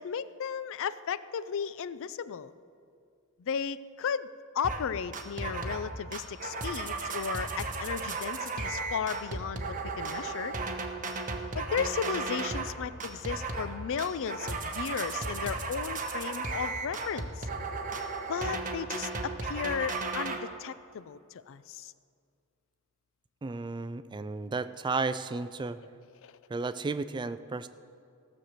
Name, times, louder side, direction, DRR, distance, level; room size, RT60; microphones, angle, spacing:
voice 1, 0.0-2.5 3.4-4.3 4.5-10.5 11.5-17.5 18.3-21.9 26.2-26.3, left 7 dB, 60° left, 15 dB, 0.4 m, -35 dB
sound 1, 4.6-4.9 5.1-5.9 6.1-12.7 13.0-13.7 14.0-20.4, right 3 dB, 35° right, 1.0 m, -35 dB
voice 2, 23.4-25.8 26.5-27.7, right 3 dB, 20° right, 13 dB, 0.3 m, -33 dB
15.5 x 6.5 x 7.4 m, 2.3 s
head